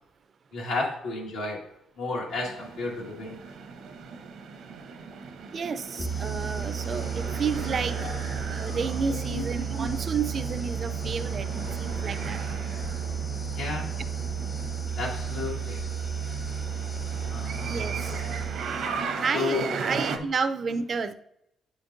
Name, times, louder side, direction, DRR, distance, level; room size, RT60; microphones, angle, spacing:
voice 1, 0.5-1.7 2.0-3.4 8.0-8.1 9.1-9.4 13.4-13.9 15.0-15.8 17.3-18.2 19.3-19.7 20.1-20.2, left 3 dB, 85° left, -2 dB, 1.9 m, -32 dB
sound 1, 2.3-20.2, right 5 dB, 75° right, 0.8 m, -38 dB
voice 2, 5.5-8.0 8.5-12.4 17.6-18.2 19.2-21.1, right 5 dB, 45° right, 10 dB, 0.4 m, -31 dB
sound 2, 6.0-19.1, right 6 dB, 20° left, 0.5 m, -33 dB
8.5 x 5.1 x 2.6 m, 0.79 s
cardioid pair, 90°, 0 cm